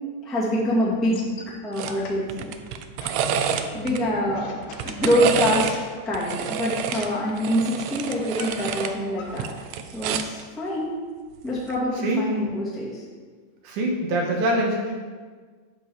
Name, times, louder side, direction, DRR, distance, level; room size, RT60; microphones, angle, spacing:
voice 1, 0.2-1.2 1.6-2.5 3.7-4.5 4.8-5.7 6.0-9.5 9.9-10.9 11.4-13.0, equal, ahead, -8 dB, 1.5 m, -25 dB
sound 1, 0.9-9.5, left 4 dB, 65° left, 1.9 m, -43 dB
sound 2, 1.8-2.0 2.3-4.0 4.6-5.8 6.1-8.9 9.3-10.4 11.6-11.8, right 8 dB, 85° right, 1.6 m, -28 dB
voice 2, 3.5-4.3 12.0-12.3 13.6-14.9, right 1 dB, 70° right, 0 dB, 2.6 m, -26 dB
10.0 x 4.0 x 7.0 m, 1.5 s
omnidirectional pair, 3.9 m